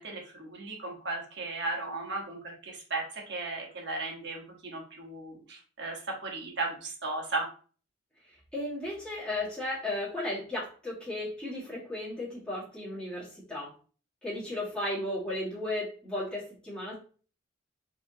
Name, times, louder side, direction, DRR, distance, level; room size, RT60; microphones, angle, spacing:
voice 1, 0.0-7.5, right 2 dB, 55° right, 0 dB, 1.2 m, -36 dB
voice 2, 8.5-13.7 14.2-16.9, left 1 dB, 5° left, -9 dB, 1.7 m, -35 dB
4.8 x 3.4 x 2.7 m, 0.40 s
head